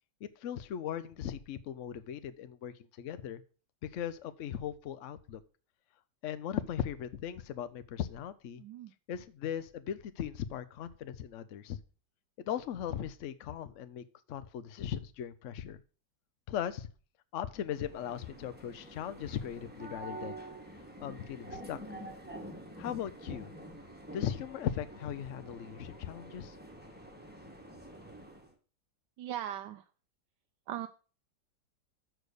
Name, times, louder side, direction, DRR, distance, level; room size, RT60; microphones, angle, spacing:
voice 1, 0.2-3.4 3.8-5.4 6.2-8.6 9.1-11.8 12.4-15.8 16.5-16.9 17.3-20.4 21.0-21.8 22.8-23.5 24.1-26.6, left 9 dB, 65° left, 12 dB, 0.7 m, -38 dB
voice 2, 8.6-8.9 29.2-29.8 30.7-30.9, right 11 dB, 80° right, 8 dB, 1.3 m, -39 dB
sound 1, 17.7-28.5, right 1 dB, 5° right, 1.1 m, -48 dB
6.6 x 6.3 x 6.6 m, 0.38 s
omnidirectional pair, 1.9 m